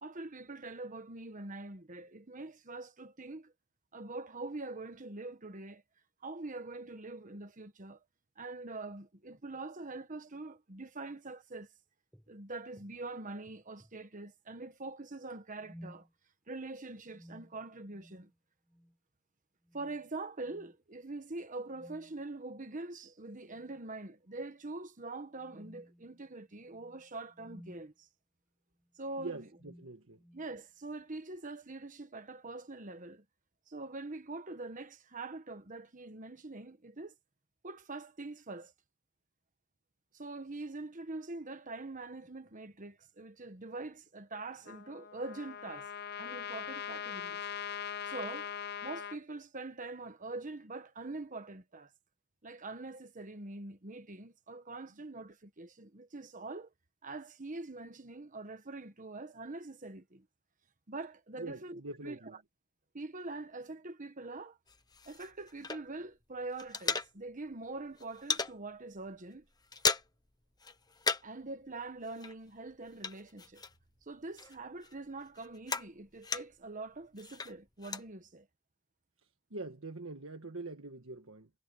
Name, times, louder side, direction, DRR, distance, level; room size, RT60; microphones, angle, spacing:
voice 1, 0.0-3.5 3.9-5.8 6.2-8.0 8.4-11.7 12.3-16.1 16.5-18.3 19.7-28.1 29.0-29.5 30.3-33.2 33.7-37.1 37.6-38.7 40.1-45.9 46.2-47.4 48.0-48.5 48.8-51.9 52.4-56.7 57.0-60.2 60.9-62.4 62.9-64.6 65.0-69.5 71.2-73.6 74.1-78.5, right 2 dB, 40° right, 1.3 m, -44 dB
sound 1, 12.1-12.3 12.8-12.9 13.5-14.0 15.6-16.1 17.1-18.3 18.7-19.0 19.6-20.1 20.4-20.8 21.7-22.2 23.4-23.9 24.3-24.5 25.3-27.9 28.8-29.1 29.5-30.5, equal, ahead, 4.2 m, -57 dB
voice 2, 29.2-30.2 61.4-62.4 79.5-81.5, right 3 dB, 70° right, 1.6 m, -44 dB
Trumpet, 44.7-49.2, left 8 dB, 50° left, 0.7 m, -41 dB
sound 2, 64.7-66.2 66.4-67.5 67.8-68.6 69.0-69.2 69.4-70.3 70.6-71.4 71.7-74.0 74.4-76.7 77.2-78.1, left 4 dB, 20° left, 1.1 m, -36 dB
head